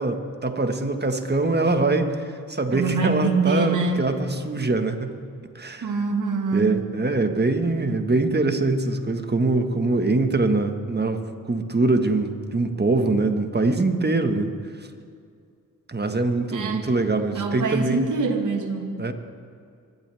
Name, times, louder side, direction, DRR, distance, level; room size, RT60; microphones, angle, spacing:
voice 1, 0.0-5.1 5.6-6.0 6.5-14.9 15.9-18.1 19.0-19.1, right 2 dB, 25° right, 6 dB, 1.7 m, -23 dB
voice 2, 2.7-4.1 5.8-6.7 16.5-16.9 17.3-18.9, right 4 dB, 55° right, 2 dB, 2.0 m, -24 dB
24.5 x 12.5 x 3.6 m, 2.3 s
supercardioid pair, 50°, 37 cm